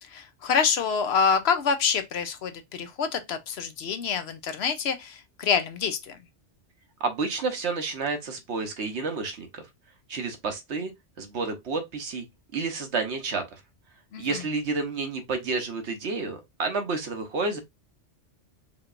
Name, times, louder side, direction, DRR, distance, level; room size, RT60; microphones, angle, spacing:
voice 1, 0.0-6.2 14.1-14.4, left 6 dB, 65° left, 0.8 m, -26 dB
voice 2, 7.0-9.6 10.1-10.9 11.2-12.2 12.5-13.6 14.2-17.6, right 4 dB, 70° right, 1.2 m, -30 dB
5.0 x 2.9 x 2.5 m
omnidirectional pair, 1.2 m